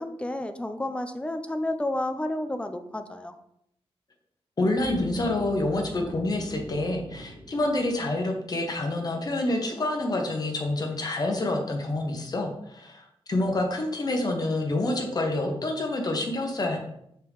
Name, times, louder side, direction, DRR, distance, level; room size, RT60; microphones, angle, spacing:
voice 1, 0.0-3.3, left 1 dB, 10° left, 8 dB, 0.4 m, -31 dB
voice 2, 4.6-13.0 13.3-16.9, left 2 dB, 40° left, 2 dB, 1.1 m, -27 dB
sound 1, 4.8-8.7, right 2 dB, 10° right, 2.4 m, -43 dB
6.4 x 4.3 x 3.6 m, 0.75 s
wide cardioid pair, 165°, 10 cm